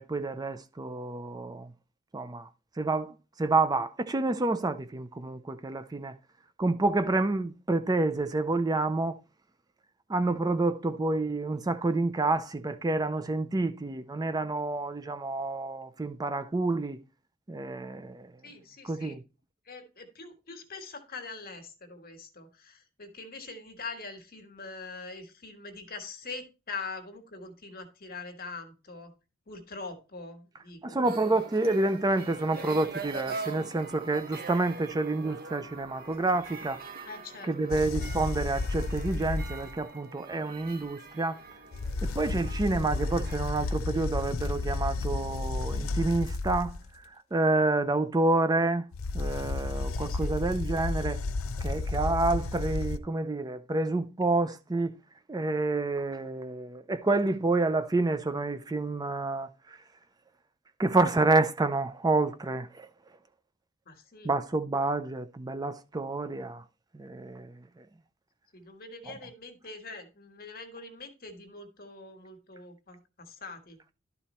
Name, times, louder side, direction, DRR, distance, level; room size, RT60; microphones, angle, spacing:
voice 1, 0.0-1.7 2.1-2.5 2.8-6.1 6.6-9.2 10.1-17.0 17.5-18.3 18.8-19.2 30.8-36.8 37.4-41.4 42.0-48.9 49.1-51.2 51.6-55.0 55.3-59.8 60.8-62.9 64.2-66.6 66.9-67.9 69.1-69.2, right 2 dB, 20° right, 0.4 m, -28 dB
voice 2, 18.4-19.2 19.7-29.1 29.5-31.4 37.0-37.8 49.9-50.3 63.9-64.3 68.5-73.8, left 4 dB, 45° left, 1.5 m, -43 dB
sound 1, 31.0-43.4, right 4 dB, 45° right, 1.4 m, -43 dB
sound 2, 37.7-39.8 41.7-46.9 48.9-53.0, left 3 dB, 70° left, 0.6 m, -32 dB
11.5 x 4.1 x 4.3 m
head